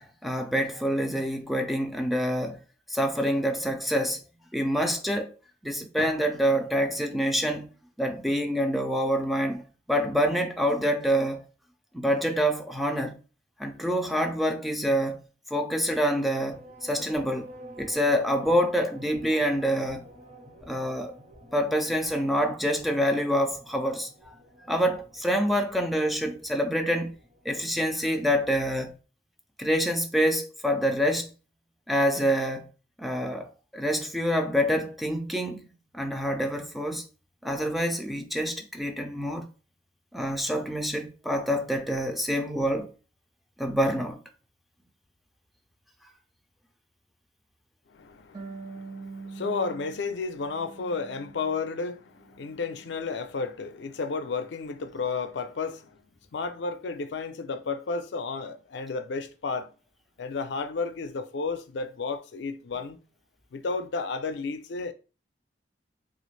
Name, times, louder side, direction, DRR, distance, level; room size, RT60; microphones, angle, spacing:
voice 1, 0.0-2.6 2.9-4.2 4.5-5.3 5.6-7.7 8.0-9.6 9.9-11.4 11.9-13.2 13.6-15.2 15.5-17.5 17.8-20.0 20.7-21.1 21.5-24.1 24.7-27.1 27.5-28.9 29.6-31.3 31.9-32.6 33.0-35.7 35.9-37.0 37.4-39.5 40.1-42.9 43.6-44.2, equal, ahead, 0.4 m, -26 dB
Drum, 6.0-8.3, right 1 dB, 80° right, 0.7 m, -47 dB
sound 1, 16.1-27.9, equal, 45° right, 1.2 m, -50 dB
voice 2, 47.9-56.0 56.3-59.7 60.2-63.0 63.5-64.9, left 4 dB, 80° left, 0.4 m, -32 dB
Harp, 48.3-51.7 52.1-53.1, right 4 dB, 25° right, 0.7 m, -44 dB
3.3 x 2.4 x 3.1 m
head